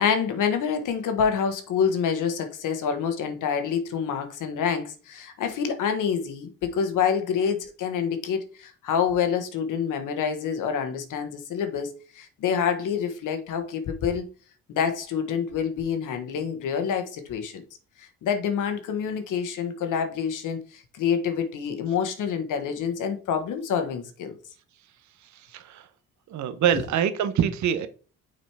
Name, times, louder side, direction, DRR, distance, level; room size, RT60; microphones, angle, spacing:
voice 1, 0.0-14.2 14.7-17.6 18.0-24.4, left 7 dB, 75° left, 1.3 m, -27 dB
voice 2, 25.2-25.9 26.3-27.9, right 9 dB, 60° right, 0.8 m, -25 dB
6.3 x 4.1 x 4.7 m
supercardioid pair, 70°, 32 cm